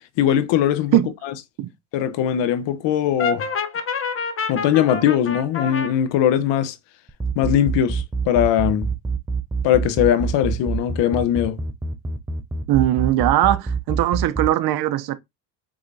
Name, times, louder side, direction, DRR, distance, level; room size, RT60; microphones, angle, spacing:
voice 1, 0.2-1.0 1.2-1.3 1.9-3.5 4.5-6.7 7.4-8.9 9.6-11.6, left 10 dB, 65° left, 0.9 m, -20 dB
Brass instrument, 3.2-5.9, left 5 dB, 25° left, 0.8 m, -27 dB
sound 1, 7.1-14.5, right 4 dB, 10° right, 0.3 m, -25 dB
voice 2, 12.7-15.2, right 13 dB, 50° right, 0.7 m, -20 dB
4.8 x 3.6 x 2.6 m
supercardioid pair, 90°, 48 cm